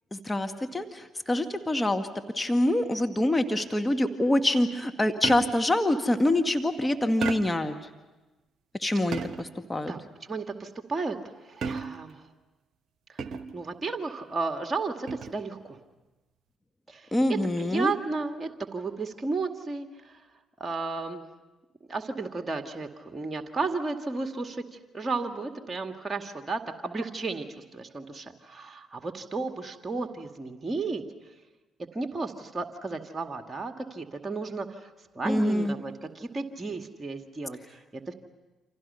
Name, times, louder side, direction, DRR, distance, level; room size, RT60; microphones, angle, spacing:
voice 1, 0.1-2.1 2.4-7.8 8.8-9.9 17.1-17.9 35.3-35.7, left 1 dB, 20° left, 7 dB, 1.8 m, -25 dB
sound 1, 5.2-5.8 7.2-7.7 9.1-9.6 11.6-12.2 13.2-13.7 15.1-15.5, right 5 dB, 60° right, 1.0 m, -34 dB
voice 2, 9.9-11.2 11.4-12.2 13.1-13.2 13.5-15.8 16.9-20.2 20.6-21.2 21.9-24.6 24.9-27.5 27.7-31.0 31.9-34.9 35.1-37.8 38.1-38.2, right 3 dB, 30° right, 5 dB, 2.1 m, -33 dB
29.0 x 26.5 x 5.7 m, 1.1 s
hypercardioid pair, 45°, 0 cm